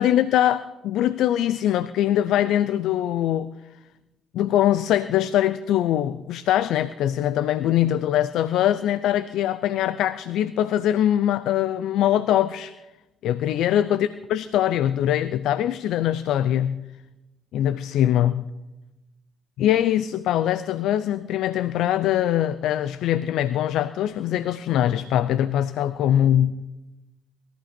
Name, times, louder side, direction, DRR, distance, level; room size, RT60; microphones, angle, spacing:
voice 1, 0.0-3.5 4.3-12.7 13.2-16.8 17.5-18.4 19.6-26.7, left 11 dB, 75° left, 0.5 m, -22 dB
21.0 x 14.0 x 4.4 m
hypercardioid pair, 50°, 0 cm